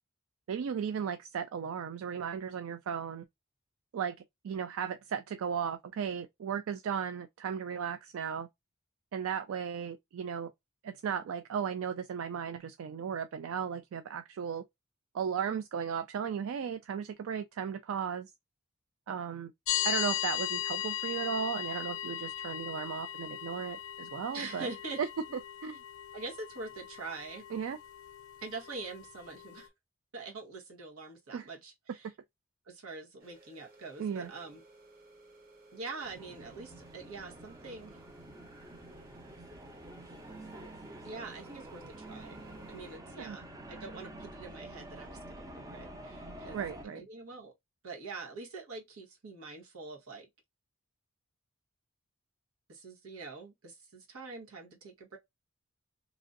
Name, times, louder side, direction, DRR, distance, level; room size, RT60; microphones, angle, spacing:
voice 1, 0.5-3.3 3.9-4.2 4.4-8.5 9.1-10.5 10.8-14.6 15.1-18.3 19.1-19.5 19.8-24.7 25.0-25.1 25.6-25.8 27.5-27.8 31.3-31.5 34.0-34.3 43.2-43.4 46.5-47.0, right 7 dB, 70° right, 0.3 m, -35 dB
sound 1, 19.7-29.7, left 12 dB, 70° left, 0.5 m, -38 dB
voice 2, 24.3-25.0 26.1-27.4 28.4-29.7 30.1-32.1 32.7-34.6 35.7-38.0 41.0-46.6 46.9-47.5 47.8-50.2 52.7-55.2, right 3 dB, 90° right, 1.2 m, -44 dB
sound 2, 33.2-43.0, right 2 dB, 45° right, 1.3 m, -58 dB
sound 3, 36.0-46.8, right 1 dB, 15° right, 0.6 m, -48 dB
3.0 x 2.6 x 2.5 m
head